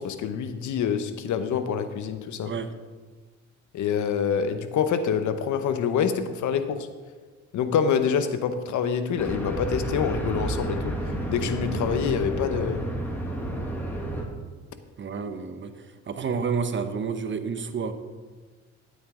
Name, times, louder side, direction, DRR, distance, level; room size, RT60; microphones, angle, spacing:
voice 1, 0.0-2.5 3.7-6.9 7.5-11.0 11.3-12.9, left 7 dB, 75° left, 10 dB, 0.9 m, -26 dB
sound 1, 9.2-14.2, right 1 dB, 5° left, 2.0 m, -30 dB
voice 2, 15.0-15.7 16.1-17.9, right 5 dB, 40° right, 9 dB, 0.9 m, -29 dB
13.0 x 8.9 x 3.7 m, 1.4 s
cardioid pair, 90°, 30 cm